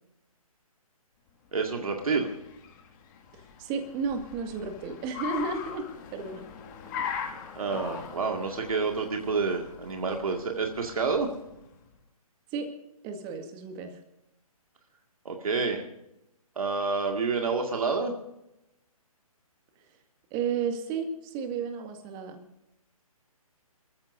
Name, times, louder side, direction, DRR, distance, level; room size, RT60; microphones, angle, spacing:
voice 1, 1.5-2.3 7.6-11.3 15.3-15.8 16.6-18.1, right 4 dB, 70° right, 2 dB, 2.1 m, -28 dB
Car, 1.7-11.8, left 7 dB, 30° left, 2.1 m, -41 dB
voice 2, 3.3-5.9 6.1-6.5 7.0-7.1 12.5-12.7 13.0-14.0 20.3-22.4, right 5 dB, 25° right, 5 dB, 1.9 m, -33 dB
27.5 x 14.5 x 2.7 m, 0.86 s
hypercardioid pair, 145°, 19 cm